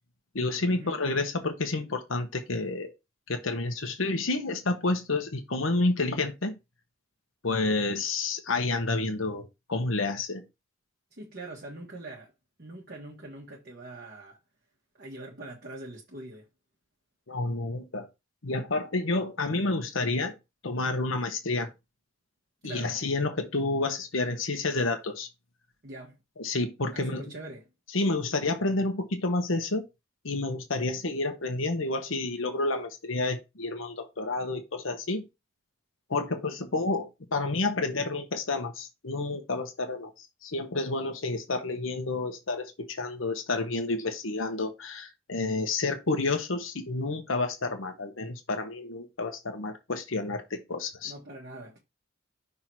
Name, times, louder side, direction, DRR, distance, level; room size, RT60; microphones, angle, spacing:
voice 1, 0.3-2.9 3.3-6.5 7.4-10.4 17.3-18.1 18.4-20.4 20.6-21.7 22.6-25.3 26.4-27.2 27.9-29.9 30.2-35.2 36.1-51.1, left 2 dB, 80° left, 1.1 m, -30 dB
voice 2, 11.1-12.3 12.6-14.4 15.0-16.5 22.6-22.9 25.8-26.2 26.9-27.7 51.0-51.8, right 2 dB, 50° right, 1.4 m, -43 dB
5.8 x 3.7 x 4.6 m
head